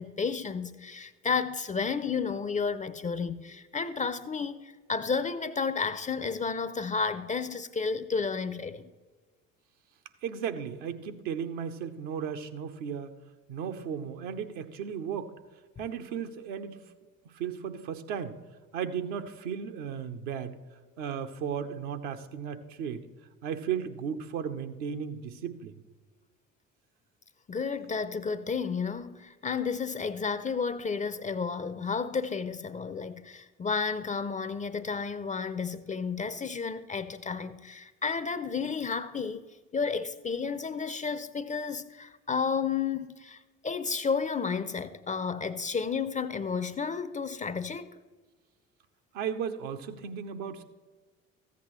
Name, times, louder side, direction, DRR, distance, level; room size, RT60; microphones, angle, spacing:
voice 1, 0.0-8.9 27.5-39.5 39.7-48.0, left 5 dB, 20° left, 0.5 m, -32 dB
voice 2, 10.2-13.1 13.5-15.3 15.8-16.8 17.3-18.4 18.7-20.6 21.0-23.1 23.4-25.8 49.1-50.6, right 7 dB, 65° right, 0.9 m, -35 dB
14.5 x 8.3 x 3.1 m
figure-of-eight pair, 55°, 39 cm